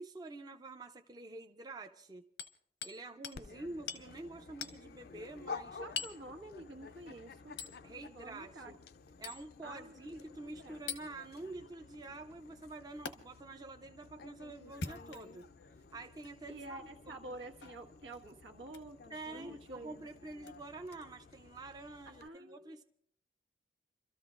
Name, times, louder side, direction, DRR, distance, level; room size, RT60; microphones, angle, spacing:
voice 1, 0.0-2.2 2.8-5.8 7.8-8.7 9.2-15.5 15.9-16.8 17.1-17.2 19.1-22.8, right 2 dB, 20° right, 5 dB, 0.5 m, -47 dB
Hammer, 2.4-3.0 3.2-3.4 3.9-4.1 4.6-4.8 6.0-6.2 7.6-7.8 9.2-9.4 10.9-11.1 13.1-13.2 14.7-15.4 16.2-16.3 17.6-17.8 18.7-18.9 20.4-20.5, left 6 dB, 85° left, 1.0 m, -42 dB
Dog, 3.3-22.3, left 4 dB, 55° left, 0.5 m, -52 dB
voice 2, 5.8-7.6 8.1-8.7 9.6-10.8 16.5-19.0 19.3-20.1 22.1-22.7, right 2 dB, 85° right, 3 dB, 1.5 m, -49 dB
30.0 x 13.5 x 2.5 m, 0.66 s
head